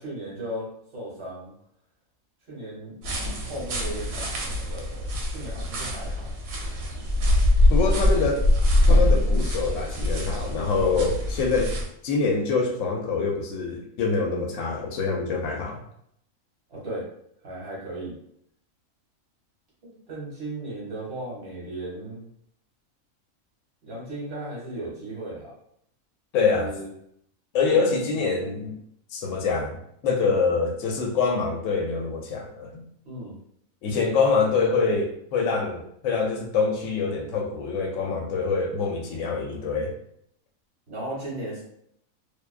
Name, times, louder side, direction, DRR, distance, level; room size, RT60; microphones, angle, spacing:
voice 1, 0.0-1.5 2.5-2.9 3.4-6.3 8.0-8.3 16.7-17.1 17.4-18.2 19.8-22.3 23.8-25.5 26.5-26.9 27.7-27.9 33.0-33.3 40.9-41.6, right 1 dB, 55° right, -5 dB, 1.3 m, -36 dB
sound 1, 3.0-11.9, left 1 dB, 85° right, 1.0 m, -23 dB
voice 2, 7.7-8.4 8.9-15.8 26.3-26.7 27.5-28.8 29.1-32.8 33.8-40.0, left 4 dB, 70° left, 2 dB, 0.9 m, -25 dB
2.5 x 2.2 x 2.3 m, 0.70 s
omnidirectional pair, 1.4 m